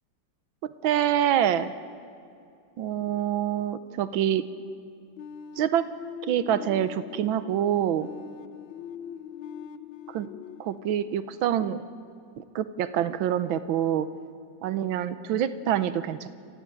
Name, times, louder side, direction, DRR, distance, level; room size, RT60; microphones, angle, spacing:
voice 1, 0.8-1.7 2.8-4.4 5.6-5.8 6.3-8.1 10.1-10.3 10.6-11.8 12.4-14.1 14.6-16.3, right 10 dB, 90° right, 13 dB, 1.6 m, -26 dB
sound 1, 5.2-11.9, left 8 dB, 90° left, 1.6 m, -42 dB
29.5 x 14.5 x 9.0 m, 2.5 s
omnidirectional pair, 2.1 m